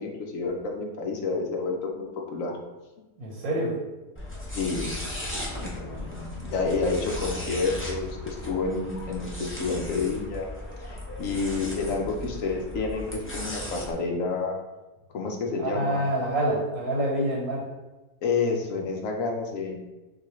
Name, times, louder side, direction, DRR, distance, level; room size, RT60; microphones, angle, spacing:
voice 1, 0.0-2.6 4.5-5.0 5.6-10.5 10.8-14.5 15.1-16.1 18.2-19.8, left 4 dB, 70° left, 1 dB, 1.1 m, -29 dB
voice 2, 3.2-3.7 15.6-17.6, right 1 dB, 80° right, -3 dB, 1.5 m, -27 dB
sound 1, 4.2-13.9, left 1 dB, 15° left, 0.6 m, -36 dB
6.4 x 2.4 x 3.1 m, 1.1 s
omnidirectional pair, 1.5 m